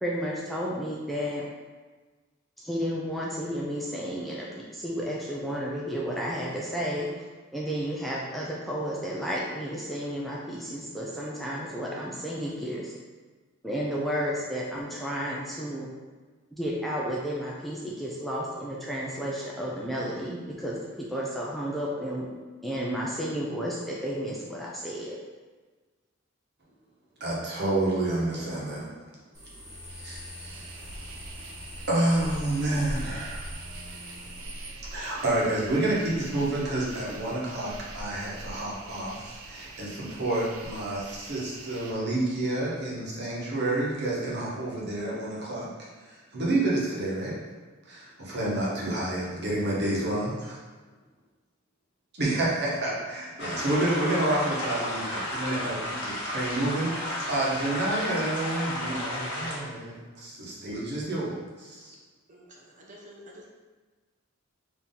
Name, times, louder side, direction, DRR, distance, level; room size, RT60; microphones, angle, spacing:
voice 1, 0.0-1.5 2.6-7.2 7.5-12.9 13.6-15.9 16.6-22.3 22.6-25.2, equal, ahead, -5 dB, 0.5 m, -32 dB
voice 2, 27.2-28.9 29.9-30.8 31.9-33.4 34.9-45.7 46.1-47.3 47.9-50.6 52.1-61.9, right 1 dB, 55° right, -5 dB, 1.2 m, -29 dB
sound 1, 29.3-34.7, equal, 15° right, 1.3 m, -44 dB
sound 2, 29.7-41.9, right 1 dB, 75° right, 0.5 m, -43 dB
sound 3, 53.4-59.6, left 1 dB, 60° left, 1.3 m, -33 dB
voice 3, 62.3-63.5, equal, 40° right, -2 dB, 0.8 m, -49 dB
4.2 x 2.9 x 3.7 m, 1.3 s
head